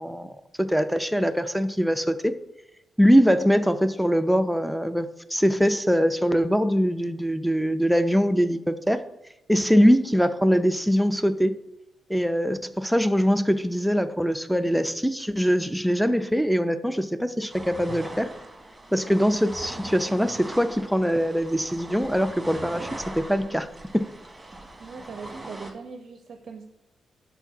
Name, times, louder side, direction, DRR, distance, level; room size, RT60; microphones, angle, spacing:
voice 1, 0.0-2.3 3.0-9.0 9.5-11.6 12.1-18.3 18.9-22.9 23.1-23.7 23.9-24.1, equal, ahead, 9 dB, 0.5 m, -22 dB
sound 1, 17.5-25.7, right 2 dB, 25° right, 1.4 m, -40 dB
voice 2, 24.8-26.7, right 4 dB, 60° right, 6 dB, 0.5 m, -40 dB
4.5 x 4.4 x 5.8 m, 0.91 s
hypercardioid pair, 40°, 0 cm